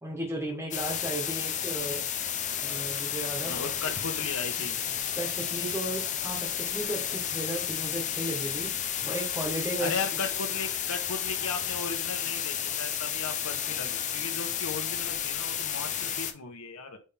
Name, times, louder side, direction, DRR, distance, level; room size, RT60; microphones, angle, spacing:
voice 1, 0.0-2.1 2.6-3.7 5.2-8.7 9.0-10.2, right 1 dB, 10° right, 0 dB, 1.6 m, -35 dB
sound 1, 0.7-16.3, left 9 dB, 35° left, 0.6 m, -32 dB
voice 2, 3.4-4.8 9.8-17.0, left 4 dB, 85° left, 5 dB, 1.4 m, -36 dB
9.1 x 3.7 x 3.7 m, 0.35 s
head